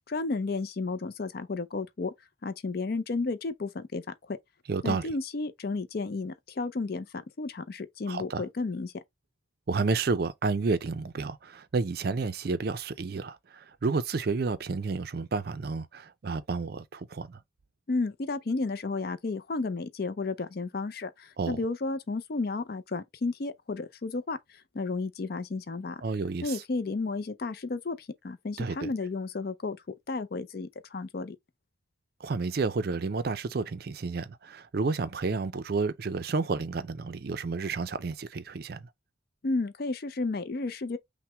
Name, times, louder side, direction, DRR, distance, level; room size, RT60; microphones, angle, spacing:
voice 1, 0.1-2.1 2.4-4.0 4.3-4.4 4.8-7.1 7.4-8.9 17.9-24.4 24.7-26.0 26.4-31.4 39.4-41.0, left 3 dB, 50° left, 0.5 m, -32 dB
voice 2, 4.7-5.1 8.1-8.4 9.7-17.4 21.4-21.6 26.0-26.6 28.6-28.9 32.2-38.9, right 4 dB, 50° right, 0.4 m, -31 dB
5.8 x 2.1 x 3.3 m
head